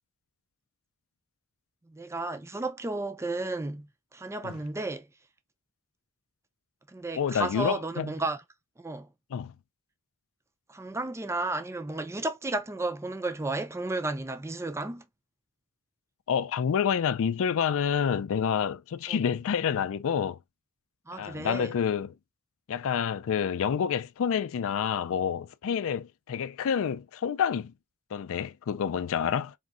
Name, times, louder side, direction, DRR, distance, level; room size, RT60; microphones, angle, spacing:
voice 1, 1.9-5.1 6.9-8.4 8.8-9.1 10.7-15.0 19.1-19.2 21.1-21.7, right 2 dB, 10° right, 0.4 m, -33 dB
voice 2, 7.1-8.1 9.3-9.5 16.3-20.4 21.1-22.1 22.7-27.7 28.1-29.5, left 7 dB, 65° left, 0.4 m, -28 dB
4.2 x 2.7 x 2.4 m
head